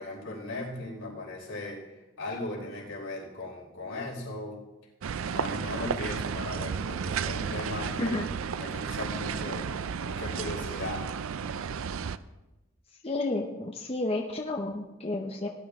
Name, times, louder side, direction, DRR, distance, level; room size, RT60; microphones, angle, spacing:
voice 1, 0.0-4.6 5.3-8.2 8.5-9.7 10.0-11.0, left 2 dB, 80° left, -5 dB, 4.6 m, -38 dB
sound 1, 5.0-12.2, right 6 dB, 75° right, 0.4 m, -33 dB
voice 2, 13.0-15.5, left 2 dB, 25° left, 2 dB, 0.7 m, -31 dB
17.0 x 10.5 x 3.6 m, 1.0 s
head